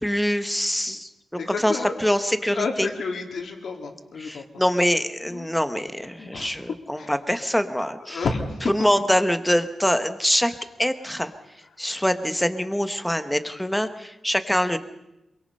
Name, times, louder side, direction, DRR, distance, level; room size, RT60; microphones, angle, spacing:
voice 1, 0.0-1.1 1.5-2.9 4.2-8.2 8.7-10.5 10.8-11.3 11.8-14.8, equal, 5° left, 9 dB, 1.1 m, -24 dB
voice 2, 1.4-1.9 2.5-4.6 5.3-5.5 6.2-6.6 6.9-7.1 8.0-8.7 10.4-10.5, left 4 dB, 70° left, 3 dB, 3.1 m, -31 dB
26.5 x 23.0 x 5.5 m, 0.92 s
wide cardioid pair, 175°, 0 cm